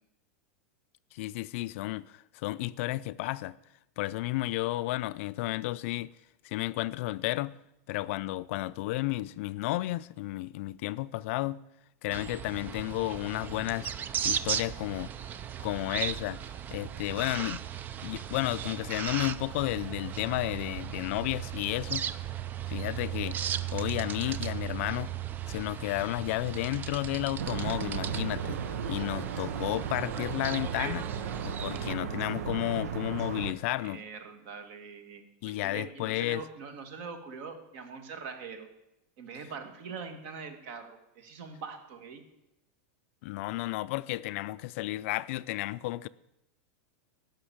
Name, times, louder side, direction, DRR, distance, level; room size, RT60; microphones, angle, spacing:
voice 1, 1.1-3.6 4.0-6.1 6.4-7.6 7.9-11.6 12.0-14.0 14.2-15.1 15.6-16.4 16.7-17.6 18.0-22.1 22.7-23.4 23.7-25.1 25.5-28.6 28.9-31.1 31.4-34.0 35.4-36.4 43.2-46.1, left 18 dB, 55° left, 0.4 m, -32 dB
sound 1, 12.1-31.9, right 10 dB, 20° right, 0.4 m, -37 dB
sound 2, 27.4-33.5, right 7 dB, 85° right, 0.8 m, -35 dB
voice 2, 33.4-38.7 39.2-42.3, right 5 dB, 50° right, 1.9 m, -43 dB
11.5 x 6.0 x 8.6 m
supercardioid pair, 150°, 8 cm